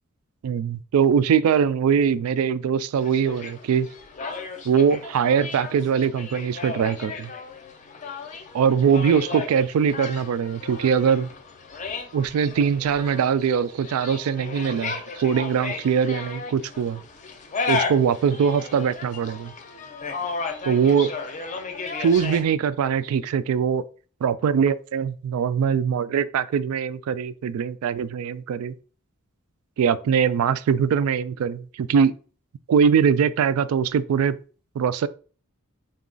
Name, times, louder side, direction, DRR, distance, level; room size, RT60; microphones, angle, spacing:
voice 1, 0.4-3.9 4.7-7.3 8.5-11.3 12.1-17.0 17.7-19.5 20.6-21.1 22.0-23.8 24.2-28.7 29.8-32.1 32.7-34.4 34.8-35.1, right 7 dB, 85° right, 0.3 m, -22 dB
sound 1, 3.0-22.4, left 4 dB, 35° left, 0.5 m, -34 dB
3.9 x 2.3 x 3.8 m
head